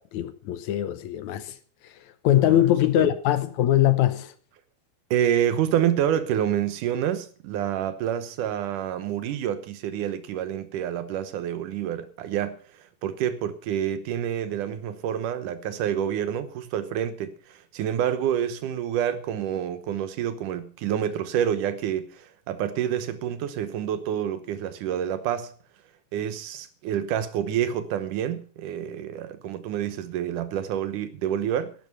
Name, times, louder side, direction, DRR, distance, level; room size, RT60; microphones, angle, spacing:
voice 1, 0.1-1.6 1.8-4.3, left 13 dB, 70° left, 2.1 m, -22 dB
voice 2, 5.1-12.6 13.0-25.5 26.1-31.7, right 10 dB, 75° right, 2.6 m, -28 dB
13.0 x 11.0 x 5.5 m
omnidirectional pair, 3.7 m